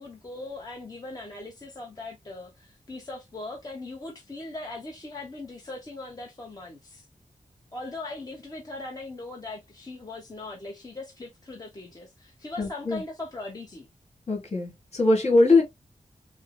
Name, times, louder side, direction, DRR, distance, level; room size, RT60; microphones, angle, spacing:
voice 1, 0.0-7.1 7.7-13.9, left 2 dB, 30° left, 1.1 m, -39 dB
voice 2, 12.6-13.0 14.3-15.6, left 2 dB, 55° left, 2.1 m, -21 dB
6.3 x 2.1 x 2.2 m
wide cardioid pair, 95°, 13 cm